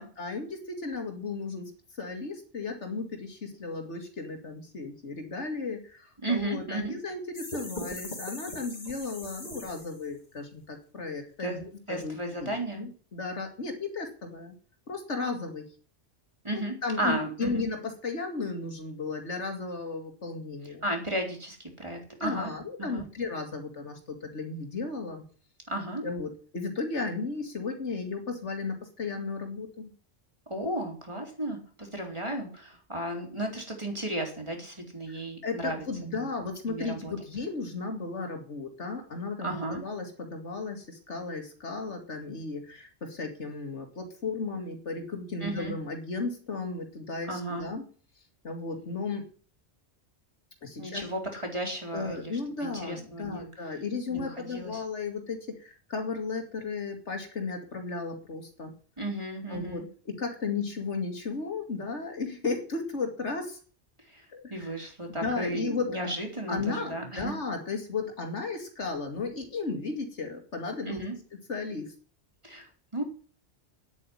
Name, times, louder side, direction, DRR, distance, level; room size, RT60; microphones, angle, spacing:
voice 1, 0.0-14.5 14.9-15.7 16.5-20.8 22.1-25.2 26.0-29.9 35.4-47.8 48.4-49.3 50.6-51.0 51.9-58.7 59.5-63.6 64.3-64.7 65.1-66.1 66.5-71.0 71.5-71.9, left 4 dB, 85° left, 5 dB, 2.6 m, -35 dB
voice 2, 6.2-6.9 11.4-11.6 11.9-12.8 16.4-17.6 20.6-22.5 22.8-23.1 25.7-26.1 30.5-35.8 36.2-36.3 36.7-37.1 39.4-39.8 45.4-45.8 47.3-47.7 50.8-53.5 54.1-54.8 59.0-59.8 64.0-67.3 70.9-71.1 72.4-73.0, right 1 dB, 25° right, 2 dB, 4.0 m, -34 dB
sound 1, 7.3-10.2, left 1 dB, 40° left, 2.7 m, -40 dB
9.9 x 8.5 x 9.8 m, 0.42 s
omnidirectional pair, 1.2 m